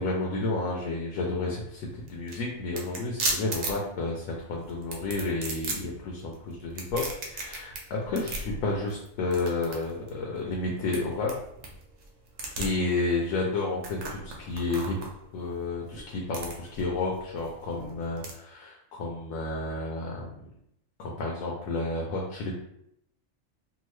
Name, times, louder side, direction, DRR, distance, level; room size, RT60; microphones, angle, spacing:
voice 1, 0.0-11.3 12.6-15.0 15.3-20.5 21.0-22.5, left 3 dB, 85° left, -1 dB, 1.0 m, -31 dB
sound 1, 1.6-18.3, right 2 dB, 75° right, 1.1 m, -38 dB
2.8 x 2.4 x 3.1 m, 0.77 s
omnidirectional pair, 1.4 m